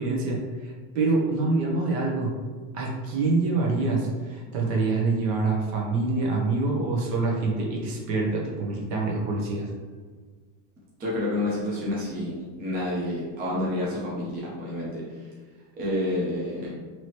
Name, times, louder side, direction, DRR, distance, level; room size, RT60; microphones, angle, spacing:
voice 1, 0.0-2.3 2.7-9.7, right 3 dB, 50° right, -2 dB, 1.0 m, -26 dB
voice 2, 11.0-15.0 15.8-16.7, left 1 dB, 20° right, -6 dB, 0.6 m, -29 dB
4.7 x 3.0 x 3.0 m, 1.5 s
cardioid pair, 170°, 47 cm